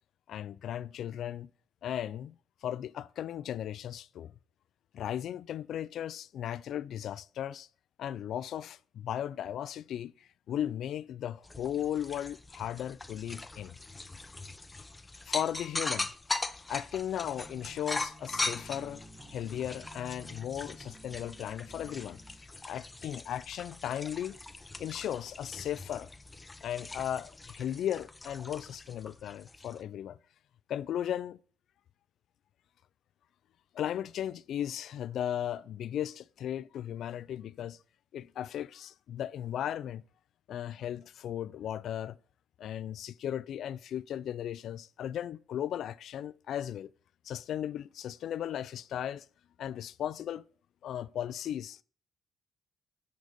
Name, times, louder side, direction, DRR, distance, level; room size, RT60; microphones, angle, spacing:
voice 1, 0.3-1.5 1.8-2.3 2.6-4.3 4.9-7.7 8.0-13.7 15.3-16.1 16.7-19.0 19.3-22.2 22.7-24.4 24.8-26.1 26.6-30.2 30.7-31.4 33.7-37.8 38.1-40.0 40.5-42.2 42.6-46.9 47.2-49.3 49.6-50.4 50.8-51.8, left 10 dB, 70° left, 0.3 m, -36 dB
sound 1, 11.4-29.8, left 2 dB, 20° left, 0.6 m, -41 dB
sound 2, 17.2-22.4, right 1 dB, 50° right, 2.8 m, -53 dB
9.5 x 4.0 x 5.1 m
cardioid pair, 90°, 0 cm